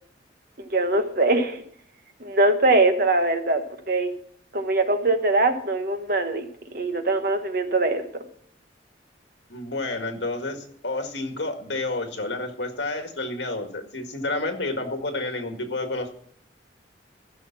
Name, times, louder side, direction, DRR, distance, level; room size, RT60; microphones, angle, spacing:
voice 1, 0.6-1.6 2.2-3.6 3.9-4.1 4.5-8.0, right 2 dB, 50° right, 7 dB, 1.3 m, -22 dB
voice 2, 9.5-16.1, left 2 dB, 70° left, 5 dB, 2.0 m, -30 dB
14.5 x 6.3 x 6.0 m, 0.63 s
head